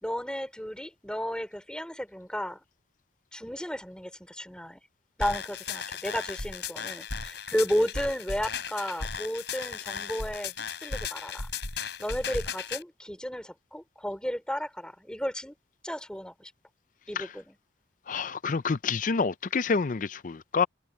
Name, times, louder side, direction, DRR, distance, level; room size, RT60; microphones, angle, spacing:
voice 1, 0.0-2.6 3.3-4.8 5.2-11.5 11.7-15.5 15.8-16.5 17.1-17.6, equal, 5° left, 3.5 m, -33 dB
sound 1, 5.2-12.8, left 5 dB, 70° left, 3.9 m, -36 dB
voice 2, 18.1-20.7, left 5 dB, 45° left, 0.5 m, -28 dB
head